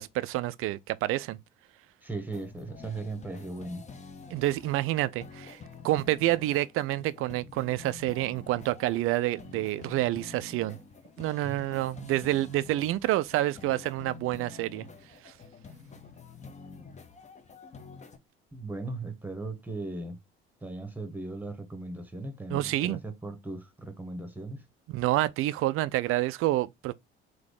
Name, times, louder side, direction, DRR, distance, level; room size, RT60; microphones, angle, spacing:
voice 1, 0.0-1.4 4.3-5.6 5.8-10.8 11.2-14.8 15.2-15.3 22.5-23.0 24.9-26.9, right 16 dB, 45° right, 0.4 m, -28 dB
voice 2, 2.0-3.8 11.4-11.6 18.5-20.2 20.6-24.6, right 2 dB, 5° right, 1.1 m, -38 dB
sound 1, 2.3-18.2, left 5 dB, 20° left, 0.7 m, -48 dB
3.7 x 2.8 x 3.6 m
figure-of-eight pair, 55°, 32 cm